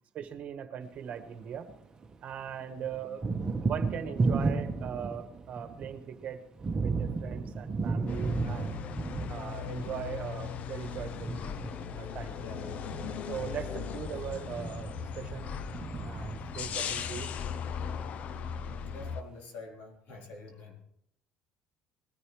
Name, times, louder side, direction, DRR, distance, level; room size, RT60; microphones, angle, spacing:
voice 1, 0.1-1.7 2.2-3.2 3.6-6.4 6.8-8.8 9.3-11.4 11.9-12.3 13.3-15.5 16.0-17.3, right 8 dB, 50° right, 7 dB, 1.4 m, -40 dB
Thunder, 1.0-2.2 2.4-17.7, right 3 dB, 25° right, 1.2 m, -35 dB
voice 2, 2.7-3.1 12.3-12.8 16.7-17.2 18.9-20.8, left 3 dB, 75° left, 0 dB, 3.9 m, -47 dB
sound 1, 8.1-19.2, left 7 dB, 55° left, 0.7 m, -38 dB
20.0 x 11.0 x 3.3 m, 0.72 s
cardioid pair, 110°, 3 cm